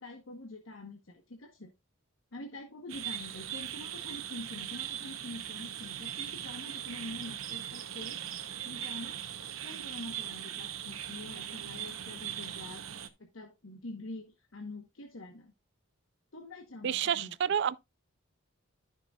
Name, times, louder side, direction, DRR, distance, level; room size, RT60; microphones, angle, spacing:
voice 1, 0.0-1.7 2.3-8.2 8.6-9.2 9.6-12.8 13.2-15.5 16.3-17.6, left 2 dB, 70° left, 1.0 m, -45 dB
sound 1, 2.9-13.1, right 10 dB, 75° right, 0.8 m, -40 dB
voice 2, 16.8-17.8, right 8 dB, 55° right, 0.3 m, -29 dB
13.0 x 5.9 x 2.3 m
head